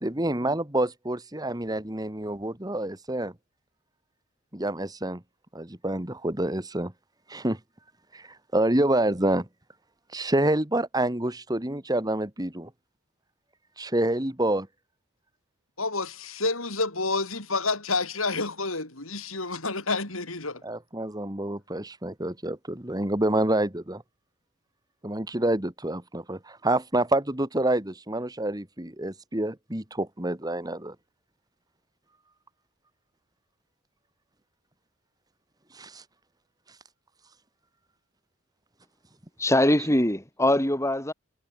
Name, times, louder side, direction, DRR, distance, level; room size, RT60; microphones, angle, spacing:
voice 1, 0.0-3.3 4.5-5.2 5.5-6.9 7.3-7.6 8.1-9.5 10.1-12.7 13.8-14.7 20.6-24.0 25.0-31.0 35.7-36.0, right 1 dB, 20° right, 2.1 m, -27 dB
voice 2, 15.8-20.6, left 3 dB, 80° left, 7.7 m, -29 dB
voice 3, 39.4-41.1, left 1 dB, 15° left, 3.7 m, -22 dB
head